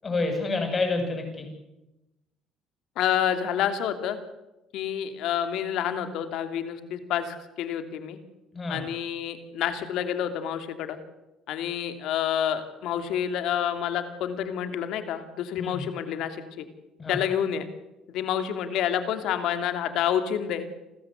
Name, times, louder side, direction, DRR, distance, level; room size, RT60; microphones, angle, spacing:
voice 1, 0.0-1.5 8.5-8.8 15.6-15.9 17.0-17.2, left 3 dB, 30° left, 5 dB, 7.7 m, -28 dB
voice 2, 3.0-4.2 4.7-8.2 8.7-11.0 11.5-16.6 17.1-17.7 18.1-20.7, left 9 dB, 75° left, 9 dB, 2.7 m, -28 dB
29.0 x 14.5 x 8.2 m, 0.99 s
cardioid pair, 90°, 0 cm